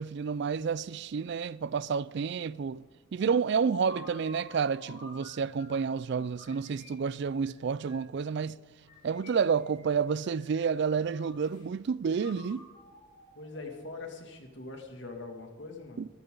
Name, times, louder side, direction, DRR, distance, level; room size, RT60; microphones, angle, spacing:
voice 1, 0.0-2.8 3.1-8.6 9.0-12.7 16.0-16.1, right 6 dB, 55° right, 0.3 m, -30 dB
sound 1, 3.2-5.9 6.4-8.2 8.8-10.0 10.2-11.7 12.2-14.0, left 3 dB, 40° left, 4.7 m, -52 dB
voice 2, 13.4-16.0, left 3 dB, 55° left, 2.4 m, -42 dB
21.0 x 13.5 x 3.9 m
head